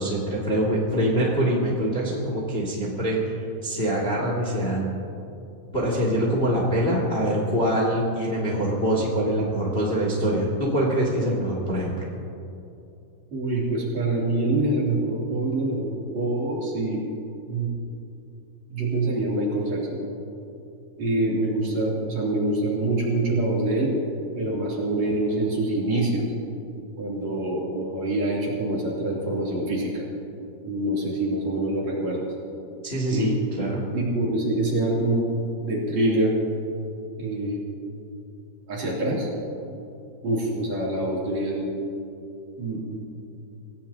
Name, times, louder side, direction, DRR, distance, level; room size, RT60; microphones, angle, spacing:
voice 1, 0.0-3.3 3.6-4.9 5.7-11.9 32.8-33.8, right 1 dB, 70° left, -4 dB, 0.6 m, -24 dB
voice 2, 13.3-17.0 17.5-17.7 18.7-20.0 21.0-23.9 24.4-26.3 27.0-30.0 30.6-32.3 33.1-33.3 33.9-35.3 35.6-36.4 37.2-37.6 38.7-39.3 40.2-41.7 42.6-43.0, right 2 dB, 40° right, -5 dB, 3.6 m, -25 dB
27.0 x 16.5 x 2.9 m, 2.7 s
omnidirectional pair, 5.7 m